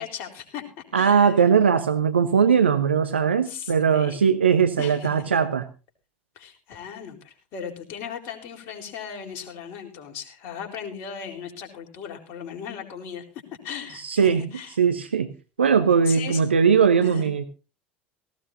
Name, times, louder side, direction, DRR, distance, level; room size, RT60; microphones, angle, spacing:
voice 1, 0.0-1.3 3.5-4.2 4.8-5.2 6.4-13.2 13.6-14.8 16.1-16.4 17.0-17.3, left 7 dB, 50° left, 3 dB, 3.9 m, -37 dB
voice 2, 0.9-5.6 13.9-14.4 14.8-15.3 15.6-17.4, right 6 dB, 80° right, 10 dB, 0.9 m, -20 dB
18.0 x 16.0 x 2.7 m, 0.32 s
figure-of-eight pair, 70°, 6 cm